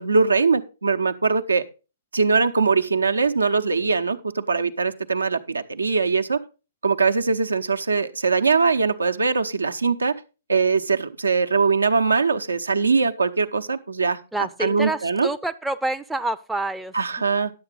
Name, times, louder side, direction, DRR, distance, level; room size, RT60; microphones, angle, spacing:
voice 1, 0.0-1.6 2.1-6.4 6.8-10.2 10.5-14.2 14.6-15.3 16.9-17.5, right 4 dB, 75° right, 8 dB, 0.8 m, -21 dB
voice 2, 14.3-17.3, right 2 dB, 5° right, 8 dB, 0.5 m, -28 dB
10.5 x 8.0 x 3.9 m, 0.31 s
figure-of-eight pair, 115°, 0 cm